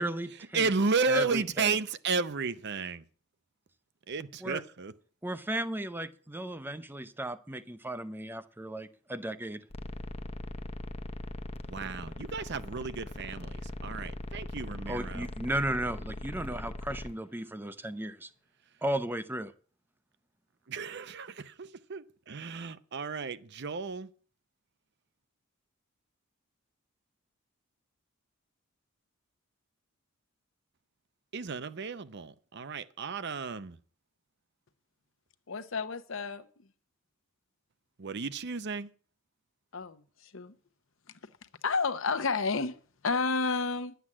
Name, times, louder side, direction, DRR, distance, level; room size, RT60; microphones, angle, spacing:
voice 1, 0.0-0.7 1.1-1.8 4.4-4.6 5.2-9.7 14.9-18.3 18.8-19.5, right 1 dB, 10° right, 0.6 m, -35 dB
voice 2, 0.5-3.0 4.1-4.9 11.7-15.3 20.7-24.1 31.3-33.8 38.0-38.9, right 4 dB, 50° right, 0.7 m, -33 dB
sound 1, 9.7-17.1, left 1 dB, 30° left, 0.8 m, -40 dB
voice 3, 35.5-36.5 39.7-40.0 40.3-40.5 41.6-42.8 43.0-43.9, left 4 dB, 60° left, 0.9 m, -30 dB
11.0 x 8.1 x 7.4 m
head